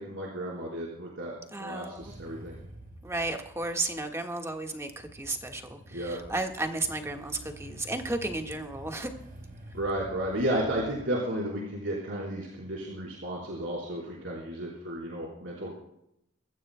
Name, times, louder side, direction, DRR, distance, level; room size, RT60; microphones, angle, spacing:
voice 1, 0.0-2.6 5.9-6.2 9.7-15.7, right 1 dB, 70° right, -5 dB, 4.2 m, -33 dB
voice 2, 1.5-2.1 3.0-9.1, right 2 dB, 15° right, 3 dB, 1.5 m, -33 dB
Motorcycle / Engine starting, 1.9-11.0, right 1 dB, 45° right, 7.1 m, -48 dB
25.0 x 14.5 x 2.2 m, 0.79 s
head